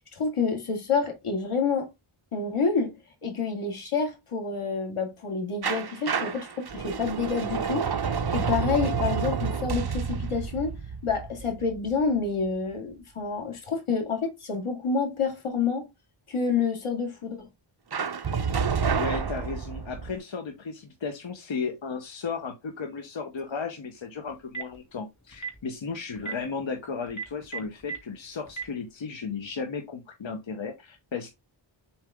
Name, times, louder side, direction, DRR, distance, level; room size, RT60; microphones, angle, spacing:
voice 1, 0.1-1.9 2.3-2.9 3.2-7.8 8.3-10.7 11.0-15.9 16.3-17.5, left 5 dB, 90° left, 2.4 m, -28 dB
sound 1, 5.6-12.4 17.9-20.1, right 6 dB, 50° right, 0.9 m, -29 dB
voice 2, 19.0-31.3, left 5 dB, 65° left, 1.1 m, -35 dB
Telephone, 24.3-24.8 25.3-25.6 26.1-26.3 27.1-28.0 28.5-28.6, right 5 dB, 35° left, 2.5 m, -33 dB
7.3 x 4.4 x 3.6 m
wide cardioid pair, 95°, 49 cm